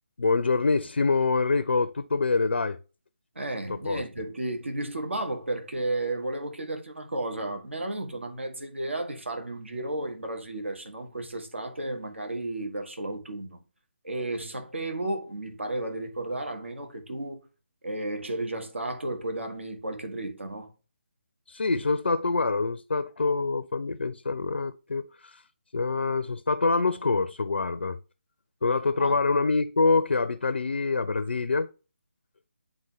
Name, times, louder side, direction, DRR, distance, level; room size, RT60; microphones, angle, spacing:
voice 1, 0.2-2.8 3.7-4.0 21.5-25.4 25.7-28.0 28.6-31.7, left 3 dB, 65° left, 0.5 m, -25 dB
voice 2, 3.3-13.6 14.0-17.4 17.8-20.7 29.0-29.2, right 2 dB, 70° right, 1.5 m, -33 dB
9.9 x 3.8 x 3.1 m
figure-of-eight pair, 150°, 7 cm